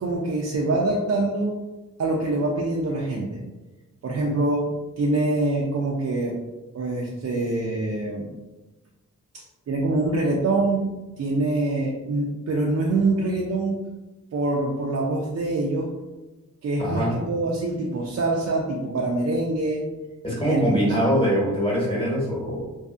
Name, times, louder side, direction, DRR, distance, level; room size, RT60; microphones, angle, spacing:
voice 1, 0.0-1.6 2.0-3.4 4.0-6.4 6.7-8.3 9.3-13.9 14.3-15.9 16.6-19.8 20.4-20.7 21.0-21.1, right 2 dB, 55° right, -3 dB, 0.5 m, -25 dB
voice 2, 16.8-17.1 20.2-22.7, equal, 15° left, -4 dB, 1.1 m, -23 dB
2.5 x 2.3 x 2.5 m, 1.1 s
cardioid pair, 60°, 31 cm